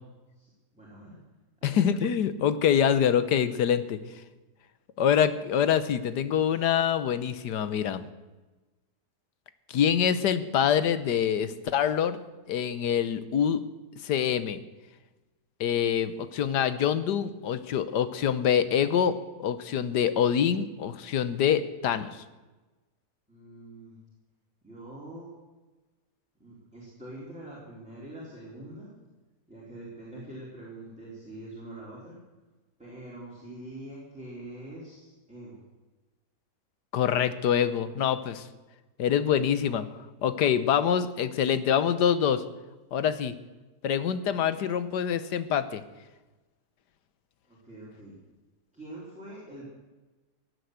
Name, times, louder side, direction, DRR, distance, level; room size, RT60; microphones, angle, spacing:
voice 1, 0.4-1.2 1.6-1.8 23.3-24.0 24.6-25.3 26.4-28.9 29.5-32.2 32.8-35.6 47.5-48.1 48.7-49.6, right 1 dB, 5° right, -6 dB, 4.1 m, -44 dB
voice 2, 1.6-4.0 5.0-8.0 9.7-12.2 12.5-13.6 14.0-14.6 15.6-22.2 36.9-38.5 39.0-39.9 40.2-42.4 42.9-43.3 43.8-45.8, left 8 dB, 80° left, 13 dB, 1.5 m, -25 dB
16.5 x 9.6 x 8.0 m, 1.2 s
omnidirectional pair, 1.8 m